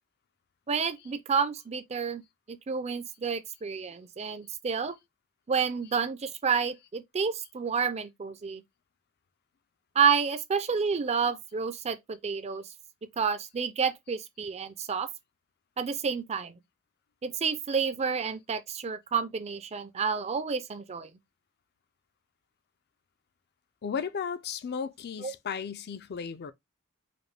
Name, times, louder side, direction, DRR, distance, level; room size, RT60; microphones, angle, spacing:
voice 1, 0.7-2.2 2.5-5.0 5.5-8.6 10.0-12.6 13.2-15.1 15.8-16.5 17.2-21.1 25.2-25.3, right 6 dB, 30° right, 0.4 m, -29 dB
voice 2, 23.8-26.5, left 6 dB, 50° left, 0.4 m, -35 dB
5.0 x 2.2 x 3.2 m
head